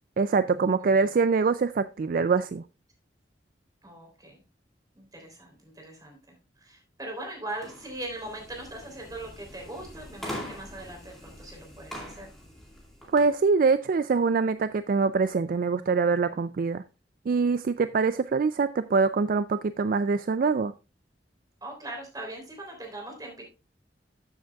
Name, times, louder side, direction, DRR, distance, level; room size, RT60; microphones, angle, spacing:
voice 1, 0.2-2.6 13.1-16.8 17.3-20.7, right 4 dB, 50° right, 0.3 m, -24 dB
voice 2, 0.8-1.1 3.8-4.4 5.0-12.3 21.6-23.4, right 1 dB, 20° right, 3.4 m, -40 dB
sound 1, 7.5-13.3, equal, ahead, 2.5 m, -43 dB
13.5 x 7.1 x 2.3 m
head